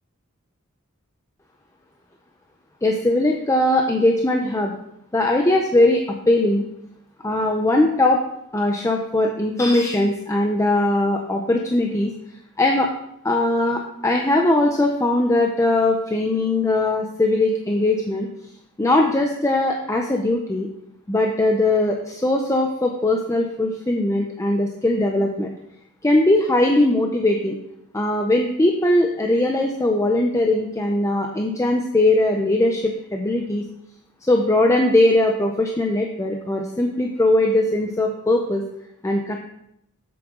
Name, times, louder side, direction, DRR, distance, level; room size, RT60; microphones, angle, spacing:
voice 1, 2.8-4.7 5.1-6.6 7.2-8.2 8.5-12.1 12.6-12.9 13.2-18.3 18.8-20.7 21.1-25.5 26.0-27.6 27.9-33.6 34.2-38.6 39.0-39.4, left 1 dB, 15° left, 2 dB, 0.5 m, -20 dB
7.8 x 7.4 x 3.7 m, 0.79 s
head